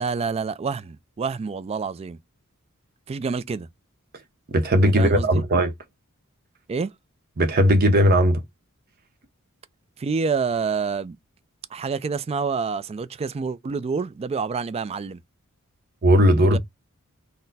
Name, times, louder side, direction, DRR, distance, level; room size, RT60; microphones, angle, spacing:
voice 1, 0.0-2.2 3.1-3.7 4.9-5.4 6.7-6.9 10.0-11.2 11.7-15.2 16.5-16.6, right 5 dB, 30° right, 0.3 m, -27 dB
voice 2, 4.5-5.7 7.4-8.4 16.0-16.6, equal, 45° right, 0.7 m, -17 dB
4.1 x 2.1 x 4.0 m
head